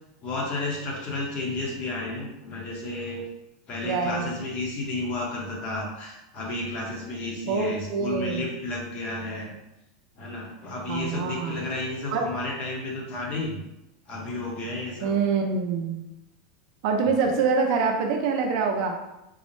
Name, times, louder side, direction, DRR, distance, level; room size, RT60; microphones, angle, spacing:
voice 1, 0.2-3.2 3.7-9.6 10.2-13.6 14.1-15.2, left 2 dB, 35° left, -2 dB, 0.8 m, -32 dB
voice 2, 3.8-4.3 7.5-8.5 10.9-11.6 12.1-12.3 15.0-16.1 16.8-19.0, right 5 dB, 55° right, 3 dB, 0.5 m, -25 dB
3.8 x 2.0 x 3.1 m, 0.92 s
supercardioid pair, 155°, 4 cm